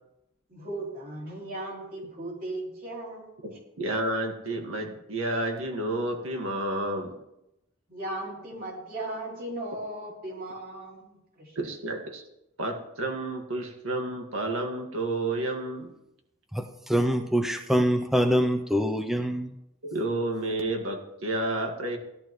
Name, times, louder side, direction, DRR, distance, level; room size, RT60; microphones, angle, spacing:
voice 1, 0.5-3.3 7.9-11.6, right 1 dB, 45° right, -2 dB, 3.3 m, -37 dB
voice 2, 3.4-7.1 11.6-12.2 12.6-15.9 19.8-22.0, right 2 dB, 90° right, 2 dB, 1.9 m, -30 dB
voice 3, 16.5-19.5, equal, ahead, 6 dB, 0.5 m, -25 dB
16.5 x 11.5 x 3.2 m, 0.85 s
head